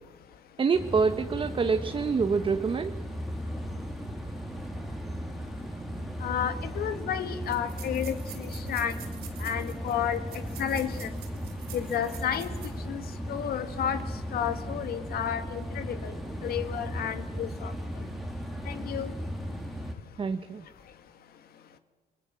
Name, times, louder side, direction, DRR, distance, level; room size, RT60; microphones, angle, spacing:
voice 1, 0.6-3.0 20.2-20.6, right 5 dB, 30° right, 8 dB, 1.0 m, -26 dB
sound 1, 0.7-19.9, equal, ahead, 2.7 m, -36 dB
voice 2, 6.2-9.0 9.4-10.2 10.6-11.1 11.7-12.5 12.8-13.0 13.3-14.0 14.3-16.1 16.4-17.7 18.7-19.1, left 9 dB, 65° left, 9 dB, 2.0 m, -31 dB
sound 2, 6.4-6.5 6.7-6.8 7.4-12.9 13.3-13.4 13.9-14.0, right 9 dB, 70° right, 5.1 m, -48 dB
28.5 x 20.5 x 7.5 m, 1.3 s
cardioid pair, 110°, 17 cm